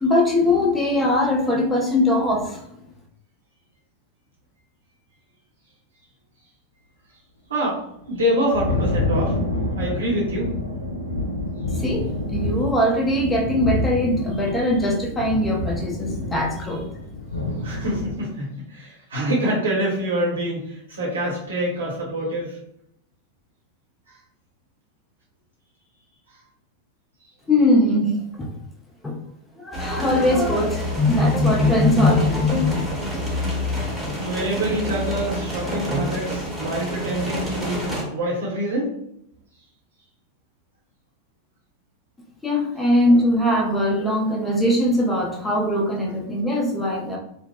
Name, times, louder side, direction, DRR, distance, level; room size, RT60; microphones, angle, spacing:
voice 1, 0.0-2.6 11.7-12.1 12.3-16.8 27.5-28.5 29.0-29.2 29.6-32.8 42.4-47.2, left 1 dB, 10° left, -1 dB, 0.5 m, -21 dB
Thunder, 8.0-18.1, left 2 dB, 80° left, 0.5 m, -27 dB
voice 2, 8.1-9.4 9.8-10.5 17.6-22.6 34.2-39.0, right 1 dB, 70° right, -5 dB, 0.9 m, -26 dB
sound 1, 29.7-38.0, equal, 5° right, 0.9 m, -28 dB
2.6 x 2.1 x 2.3 m, 0.73 s
figure-of-eight pair, 90°, 0 cm